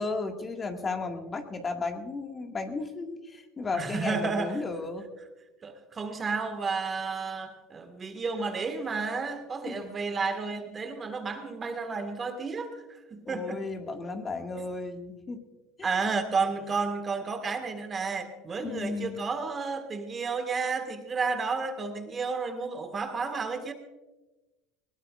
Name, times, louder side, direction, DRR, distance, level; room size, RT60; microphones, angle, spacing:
voice 1, 0.0-5.1 9.7-9.9 13.3-15.4 15.8-16.0 18.6-19.2, left 3 dB, 25° left, 4 dB, 1.9 m, -34 dB
voice 2, 3.7-4.5 5.6-13.6 15.8-23.7, right 4 dB, 30° right, 7 dB, 1.7 m, -32 dB
20.5 x 19.0 x 2.5 m, 1.1 s
supercardioid pair, 100°, 0 cm